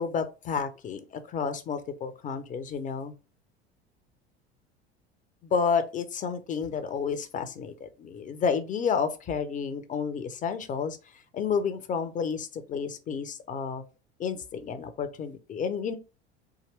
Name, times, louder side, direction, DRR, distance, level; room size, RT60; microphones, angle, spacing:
voice 1, 0.0-3.1 5.4-11.0 11.3-13.9 14.2-16.0, left 6 dB, 25° left, 0.6 m, -30 dB
3.7 x 2.9 x 3.2 m
figure-of-eight pair, 70°, 33 cm